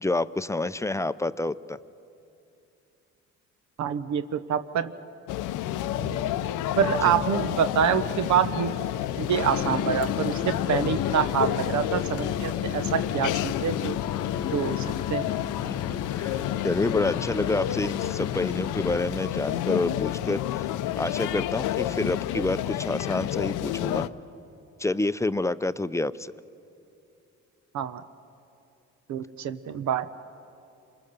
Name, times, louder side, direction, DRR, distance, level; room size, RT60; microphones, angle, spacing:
voice 1, 0.0-1.8 15.6-15.7 16.1-20.7 21.0-24.1 24.8-26.3, left 2 dB, 10° left, 15 dB, 0.5 m, -28 dB
voice 2, 3.8-4.9 6.8-8.7 9.2-13.9 14.5-15.3 27.7-28.0 29.1-30.1, right 8 dB, 70° right, 11 dB, 0.9 m, -26 dB
sound 1, 5.3-24.1, left 13 dB, 85° left, 0.7 m, -30 dB
sound 2, 5.9-9.4, right 3 dB, 25° right, 2.6 m, -45 dB
sound 3, 9.2-19.2, left 8 dB, 50° left, 0.9 m, -34 dB
27.5 x 22.0 x 6.7 m, 2.7 s
cardioid pair, 90°, 30 cm